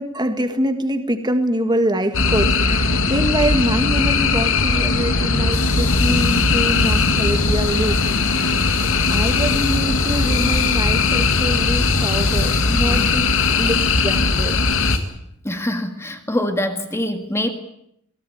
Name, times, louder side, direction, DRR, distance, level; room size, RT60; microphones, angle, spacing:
voice 1, 0.0-8.0 8.3-8.8 9.1-13.3 13.6-14.6, right 1 dB, 20° right, 7 dB, 1.8 m, -24 dB
sound 1, 2.1-15.0, left 3 dB, 60° left, 2.0 m, -19 dB
sound 2, 5.5-15.0, left 6 dB, 75° left, 5.3 m, -33 dB
voice 2, 15.4-17.5, left 1 dB, 10° left, 5 dB, 1.9 m, -24 dB
24.0 x 17.5 x 9.3 m, 0.77 s
head